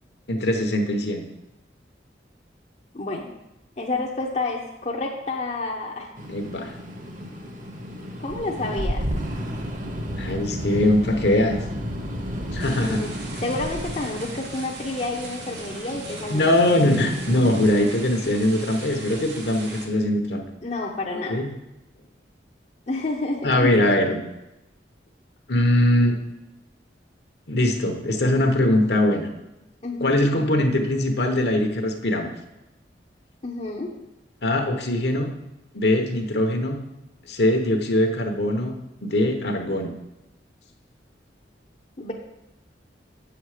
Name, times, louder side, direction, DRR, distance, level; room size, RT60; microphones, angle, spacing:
voice 1, 0.3-1.3 6.3-6.7 10.2-11.6 12.5-13.0 16.3-20.4 21.3-21.5 23.4-24.2 25.5-26.1 27.5-29.3 30.0-32.3 34.4-35.3 35.7-36.8 37.3-38.7 39.0-39.9, left 1 dB, 60° left, 4 dB, 1.1 m, -21 dB
voice 2, 2.9-3.3 3.8-6.1 8.2-9.1 12.8-13.1 13.4-16.8 20.6-21.4 22.9-23.8 29.8-30.3 33.4-33.9 42.0-42.1, left 2 dB, 40° left, -1 dB, 0.8 m, -29 dB
sound 1, 6.2-17.7, equal, 45° right, 1.1 m, -32 dB
sound 2, 12.6-19.9, right 2 dB, 75° right, 1.7 m, -40 dB
8.0 x 7.1 x 5.0 m, 0.92 s
head